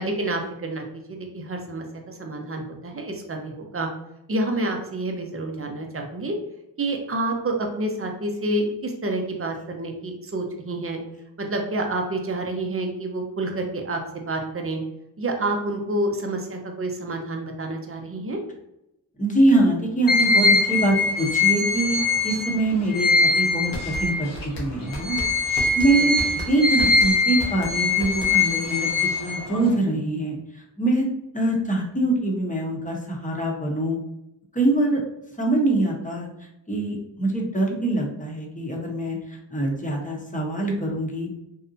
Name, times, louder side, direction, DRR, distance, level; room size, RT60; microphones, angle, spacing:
voice 1, 0.0-3.9 4.3-6.4 6.8-11.0 11.4-14.8 15.2-18.4, right 2 dB, 30° right, 3 dB, 0.6 m, -28 dB
voice 2, 19.2-24.3 24.6-26.1 26.5-28.9 29.2-31.1 31.3-34.0 34.5-35.0 35.4-36.3 36.7-41.3, right 2 dB, 20° left, -1 dB, 0.9 m, -24 dB
sound 1, 20.1-24.5 24.9-29.8, left 3 dB, 50° left, 0.8 m, -22 dB
sound 2, 23.5-28.7, left 1 dB, 85° left, 0.8 m, -34 dB
2.7 x 2.0 x 2.6 m, 0.87 s
supercardioid pair, 45°, 42 cm